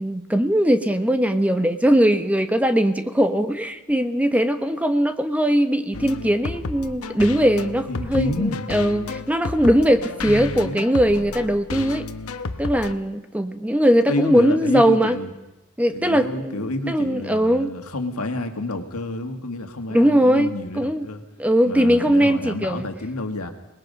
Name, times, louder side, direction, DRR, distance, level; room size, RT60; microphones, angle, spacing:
voice 1, 0.0-12.0 12.6-15.2 15.8-17.7 19.9-21.0 21.4-22.9, equal, 5° right, 8 dB, 0.9 m, -20 dB
sound 1, 5.9-12.9, left 3 dB, 70° left, 0.9 m, -32 dB
voice 2, 7.9-8.7 10.3-10.9 14.1-15.3 15.9-21.2 21.6-23.5, left 2 dB, 90° left, 5 dB, 1.9 m, -29 dB
26.0 x 20.0 x 5.3 m, 0.97 s
head